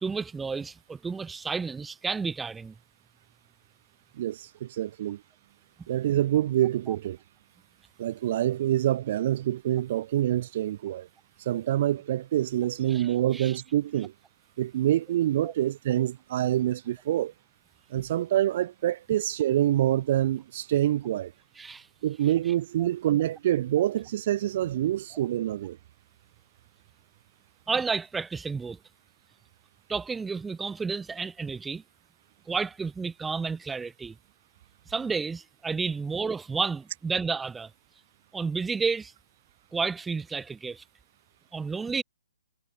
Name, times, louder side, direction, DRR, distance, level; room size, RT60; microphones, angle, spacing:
voice 1, 0.0-2.7 6.9-7.0 12.9-13.6 15.4-15.5 21.6-21.9 27.7-28.8 29.9-31.8 32.5-34.1 34.9-37.7 38.3-39.1 39.7-40.8 41.5-42.0, right 4 dB, 5° right, 1.2 m, -31 dB
voice 2, 4.2-5.2 5.9-7.2 8.0-11.1 11.4-14.1 14.6-17.3 17.9-21.3 22.0-25.8, right 12 dB, 45° right, 1.3 m, -26 dB
hypercardioid pair, 155°, 0 cm